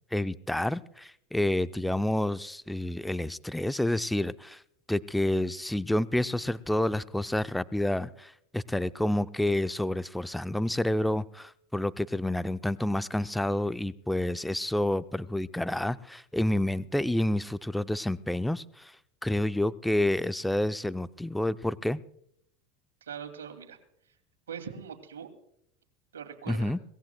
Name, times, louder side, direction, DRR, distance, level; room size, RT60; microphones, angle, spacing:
voice 1, 0.1-4.6 4.9-18.9 19.2-22.0 26.5-26.8, left 1 dB, 5° left, 14 dB, 0.5 m, -29 dB
voice 2, 23.0-23.8 24.5-25.3 26.1-26.8, right 7 dB, 80° right, 5 dB, 2.4 m, -41 dB
22.5 x 19.5 x 2.2 m, 0.72 s
hypercardioid pair, 85°, 0 cm